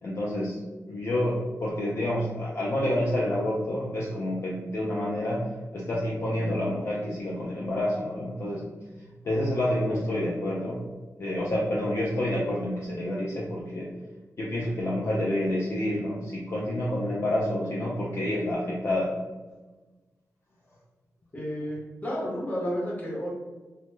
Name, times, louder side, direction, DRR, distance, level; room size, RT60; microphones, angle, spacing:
voice 1, 0.0-0.6 0.9-8.6 9.2-10.8 11.2-13.9 14.4-19.2, left 1 dB, 45° left, -5 dB, 0.4 m, -28 dB
voice 2, 21.3-23.3, equal, 25° left, -5 dB, 0.8 m, -31 dB
2.1 x 2.0 x 3.0 m, 1.2 s
wide cardioid pair, 145°, 6 cm